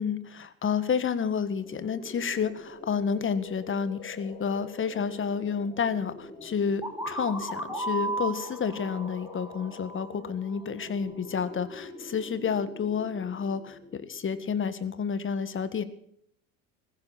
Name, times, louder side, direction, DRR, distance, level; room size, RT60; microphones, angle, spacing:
voice 1, 0.0-15.8, left 6 dB, 30° left, 14 dB, 1.7 m, -30 dB
sound 1, 1.6-14.4, left 3 dB, 10° left, 5.2 m, -46 dB
sound 2, 6.8-10.6, right 2 dB, 5° right, 5.7 m, -35 dB
20.0 x 16.0 x 4.3 m, 0.69 s
hypercardioid pair, 70°, 43 cm